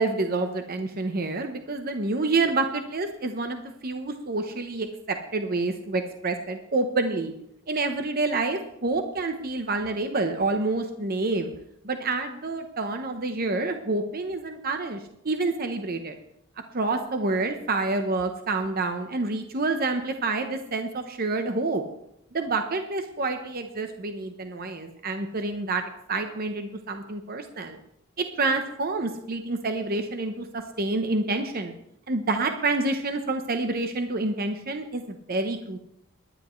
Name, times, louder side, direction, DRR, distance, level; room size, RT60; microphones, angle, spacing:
voice 1, 0.0-7.3 7.7-11.5 11.8-16.2 16.7-21.8 22.3-25.8 26.1-27.8 28.2-31.7 32.1-35.8, right 3 dB, 45° right, 6 dB, 0.9 m, -28 dB
21.5 x 10.5 x 3.2 m, 0.79 s
head